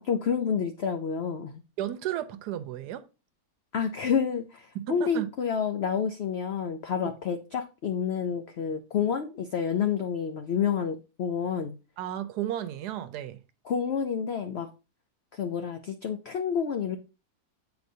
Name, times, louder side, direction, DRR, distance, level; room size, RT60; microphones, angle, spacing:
voice 1, 0.0-1.6 3.7-11.8 13.7-14.7 15.3-17.0, left 7 dB, 85° left, 0.5 m, -29 dB
voice 2, 1.8-3.0 4.7-5.3 7.0-7.1 12.0-13.4, right 12 dB, 80° right, 1.2 m, -33 dB
7.9 x 4.8 x 2.7 m
omnidirectional pair, 1.7 m